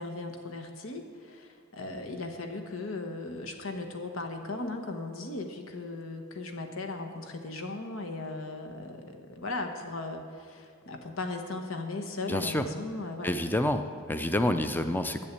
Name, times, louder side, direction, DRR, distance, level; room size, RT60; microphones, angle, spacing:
voice 1, 0.0-13.3, left 2 dB, 75° left, 5 dB, 1.3 m, -37 dB
voice 2, 12.3-12.7 13.2-15.3, left 1 dB, 10° left, 9 dB, 0.5 m, -28 dB
10.5 x 8.9 x 8.2 m, 2.2 s
head